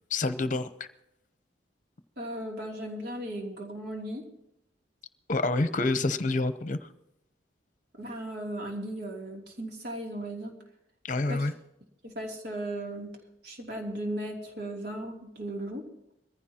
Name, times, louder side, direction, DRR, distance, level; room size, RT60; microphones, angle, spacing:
voice 1, 0.1-0.7 5.3-6.8 11.1-11.5, left 2 dB, 45° left, 12 dB, 0.8 m, -27 dB
voice 2, 2.2-4.2 8.0-10.5 11.3-11.5 12.0-13.2 13.4-15.8, right 1 dB, 65° right, 0 dB, 2.8 m, -36 dB
22.5 x 15.0 x 2.9 m, 0.81 s
head